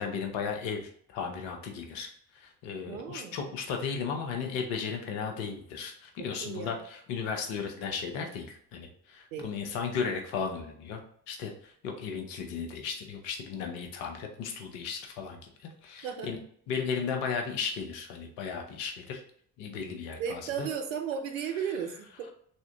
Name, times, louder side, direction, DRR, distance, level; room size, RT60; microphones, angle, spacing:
voice 1, 0.0-11.0 11.3-16.4 16.7-19.2 19.6-20.7, left 6 dB, 70° left, 3 dB, 0.9 m, -35 dB
voice 2, 2.9-3.4 6.2-6.8 9.3-9.5 16.0-16.3 20.2-22.3, right 7 dB, 80° right, 5 dB, 0.5 m, -35 dB
3.5 x 2.7 x 3.4 m, 0.63 s
hypercardioid pair, 50°, 38 cm